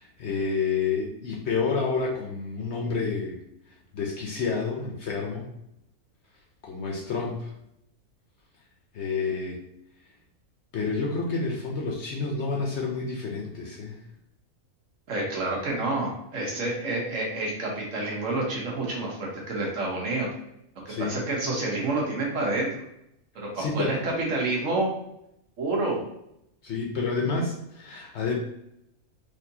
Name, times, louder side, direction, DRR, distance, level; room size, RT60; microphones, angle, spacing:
voice 1, 0.0-3.4 3.9-5.5 6.6-7.5 8.9-9.6 10.7-14.0 20.9-21.1 23.6-24.0 26.6-28.3, left 4 dB, 60° left, 0 dB, 0.8 m, -29 dB
voice 2, 15.1-20.3 20.8-22.8 23.3-24.9 25.6-26.0, right 2 dB, 60° right, -2 dB, 1.3 m, -28 dB
4.2 x 2.6 x 2.7 m, 0.79 s
omnidirectional pair, 1.5 m